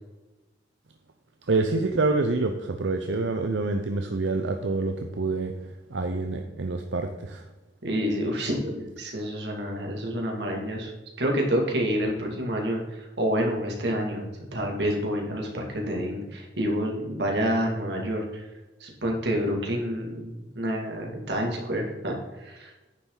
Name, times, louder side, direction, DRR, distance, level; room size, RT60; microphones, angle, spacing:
voice 1, 1.5-5.5 5.9-7.4, right 3 dB, 85° right, 5 dB, 0.7 m, -27 dB
voice 2, 7.8-10.9 11.2-18.4 18.8-22.7, equal, 65° right, 0 dB, 2.4 m, -28 dB
9.9 x 7.1 x 3.9 m, 1.1 s
head